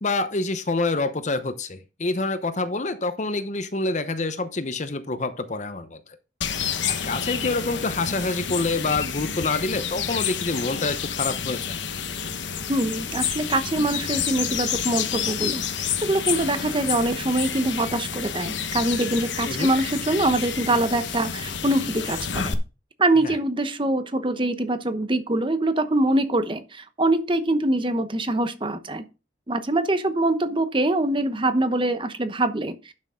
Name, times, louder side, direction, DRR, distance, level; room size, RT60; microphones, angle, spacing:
voice 1, 0.0-6.0 6.8-11.8 19.4-19.7 23.2-23.4, left 3 dB, 40° left, 0.8 m, -27 dB
sound 1, 6.4-22.5, left 7 dB, 80° left, 1.1 m, -29 dB
voice 2, 12.7-22.6 23.0-29.0 29.5-32.9, right 1 dB, 25° right, 0.9 m, -24 dB
11.0 x 6.4 x 3.7 m
head